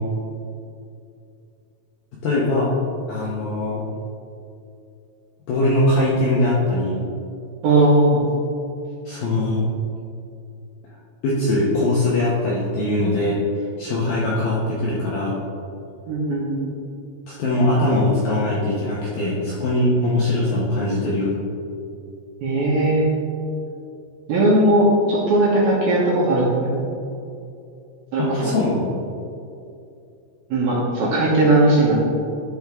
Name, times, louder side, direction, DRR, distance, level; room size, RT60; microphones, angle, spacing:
voice 1, 2.2-2.7 3.1-3.8 5.5-7.0 9.1-9.6 11.2-15.4 17.3-21.3 28.2-28.9, left 1 dB, 75° left, -6 dB, 2.1 m, -21 dB
voice 2, 7.6-8.2 16.1-16.6 22.4-23.1 24.3-26.9 28.1-28.5 30.5-32.0, right 1 dB, 70° right, -6 dB, 2.6 m, -18 dB
12.5 x 5.4 x 3.5 m, 2.6 s
omnidirectional pair, 5.5 m